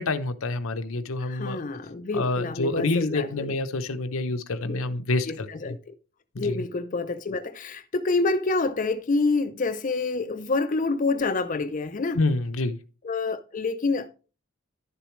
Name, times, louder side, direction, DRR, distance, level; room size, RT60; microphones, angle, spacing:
voice 1, 0.0-1.6 2.1-5.8 6.3-6.6 12.2-12.8, left 2 dB, 80° left, 0.8 m, -27 dB
voice 2, 1.2-3.6 4.6-4.8 5.2-5.9 6.4-12.2 13.0-14.1, left 3 dB, 40° left, 0.5 m, -27 dB
11.0 x 6.8 x 3.1 m
head